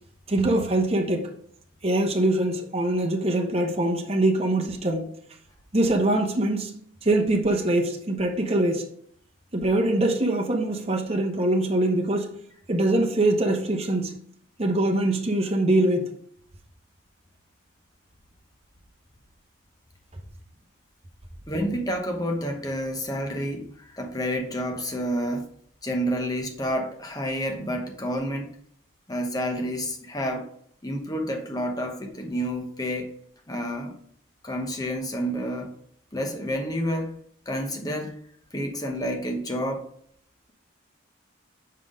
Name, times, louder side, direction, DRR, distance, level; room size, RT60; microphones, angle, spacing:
voice 1, 0.3-1.3 1.8-5.1 5.7-6.7 7.0-8.9 9.5-12.3 12.7-14.2 14.6-16.0, right 1 dB, 30° right, 1.0 m, -23 dB
voice 2, 21.5-25.5 25.8-28.5 29.1-30.5 30.8-33.1 33.5-33.9 34.4-35.7 36.1-37.2 37.5-38.2 38.5-39.9, equal, 20° left, 1.0 m, -29 dB
6.0 x 5.7 x 5.0 m
head